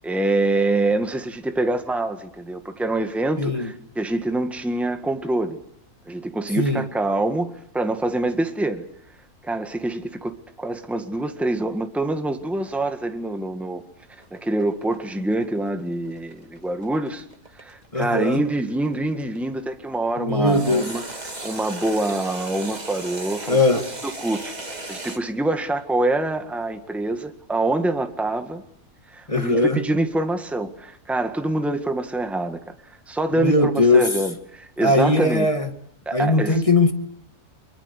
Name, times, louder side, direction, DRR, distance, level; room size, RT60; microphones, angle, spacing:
voice 1, 0.0-5.6 6.1-8.8 9.4-13.8 14.3-17.2 17.5-21.0 21.4-28.6 29.1-32.6 33.1-35.5 36.0-36.6, right 2 dB, ahead, 1.7 m, -25 dB
voice 2, 3.4-3.7 6.6-6.9 17.9-18.4 20.2-20.8 23.5-23.8 29.3-29.8 33.4-34.0 34.8-35.7 36.1-36.9, left 2 dB, 20° left, 2.0 m, -19 dB
sound 1, 14.2-19.4 20.5-25.2, right 2 dB, 25° right, 2.3 m, -36 dB
25.0 x 22.0 x 8.3 m
omnidirectional pair, 1.6 m